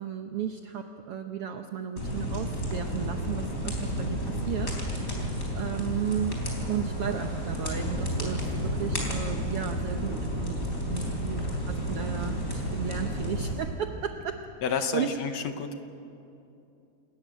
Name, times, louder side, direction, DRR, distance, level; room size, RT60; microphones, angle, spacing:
voice 1, 0.0-6.4 6.7-14.4 14.7-15.2, right 8 dB, 75° right, 6 dB, 1.3 m, -34 dB
sound 1, 2.0-13.5, equal, 25° left, 4.2 m, -31 dB
voice 2, 14.6-15.7, left 6 dB, 70° left, 8 dB, 2.0 m, -30 dB
27.0 x 14.0 x 9.1 m, 2.7 s
omnidirectional pair, 3.5 m